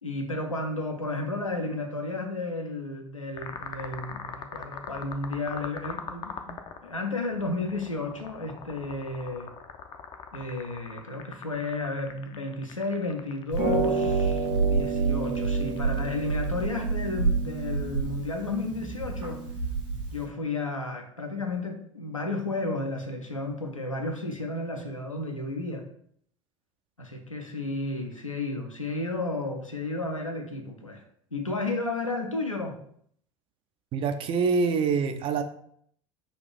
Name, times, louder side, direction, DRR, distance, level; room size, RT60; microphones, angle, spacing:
voice 1, 0.0-9.5 10.3-19.4 20.1-25.8 27.0-31.0 31.3-32.8, left 2 dB, 90° left, 2 dB, 0.5 m, -32 dB
sound 1, 3.4-16.6, left 7 dB, 30° left, 0.4 m, -42 dB
Harp, 13.5-20.2, right 4 dB, 70° right, 1.4 m, -28 dB
voice 2, 33.9-35.4, right 5 dB, 35° right, 8 dB, 0.4 m, -25 dB
4.1 x 2.4 x 3.2 m, 0.65 s
figure-of-eight pair, 75°, 16 cm